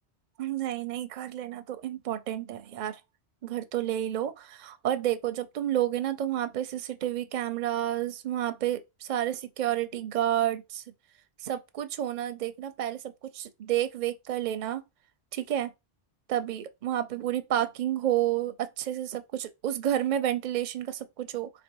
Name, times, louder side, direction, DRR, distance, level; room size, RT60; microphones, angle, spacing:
voice 1, 0.4-3.0 3.4-10.8 11.4-14.8 15.3-15.7 16.3-21.5, right 12 dB, 55° right, 0.5 m, -30 dB
3.1 x 2.9 x 4.5 m
omnidirectional pair, 1.1 m